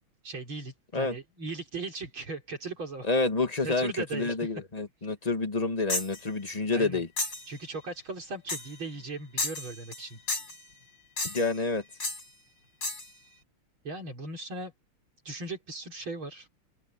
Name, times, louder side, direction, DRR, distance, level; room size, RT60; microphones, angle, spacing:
voice 1, 0.2-3.1 3.6-4.4 6.7-7.0 7.5-10.2 13.8-14.7 15.2-16.5, right 3 dB, 70° right, 4.7 m, -38 dB
voice 2, 3.0-7.1 11.2-11.8, left 3 dB, 20° left, 1.5 m, -28 dB
sound 1, 5.9-6.2 7.2-7.5 8.5-8.8 9.4-10.0 10.3-10.6 11.2-11.6 12.0-12.2 12.8-13.1, left 2 dB, 55° left, 6.6 m, -32 dB
open air
omnidirectional pair, 2.4 m